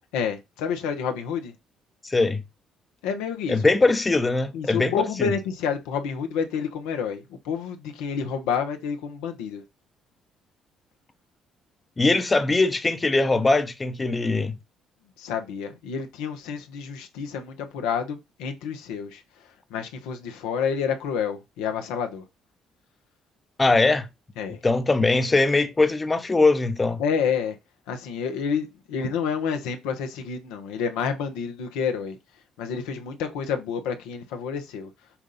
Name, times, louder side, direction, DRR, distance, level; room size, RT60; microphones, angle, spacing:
voice 1, 0.1-1.5 3.0-3.6 4.5-9.6 15.2-19.2 19.7-22.2 24.4-24.6 27.0-27.6 27.9-32.2 32.6-34.9, left 6 dB, 75° left, 0.9 m, -29 dB
voice 2, 2.0-2.4 3.5-5.3 12.0-14.6 23.6-24.1 24.6-27.0, left 3 dB, 25° left, 0.9 m, -21 dB
7.1 x 2.5 x 5.5 m
hypercardioid pair, 50°, 0 cm